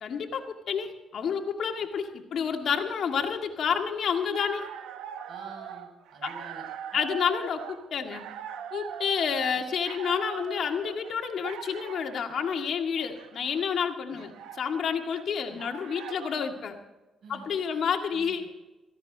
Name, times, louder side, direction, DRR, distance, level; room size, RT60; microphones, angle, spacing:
voice 1, 0.0-4.7 6.2-6.3 6.9-8.3 8.7-16.8 17.3-18.5, left 7 dB, 60° left, 4 dB, 1.9 m, -29 dB
sound 1, 4.1-16.6, right 9 dB, 90° right, 1.0 m, -42 dB
voice 2, 5.3-6.7 6.9-7.0 14.1-14.2 15.5-15.6 17.2-17.8 18.1-18.5, right 3 dB, 55° right, 2 dB, 6.8 m, -48 dB
17.0 x 16.0 x 4.0 m, 1.1 s
cardioid pair, 90°, 0 cm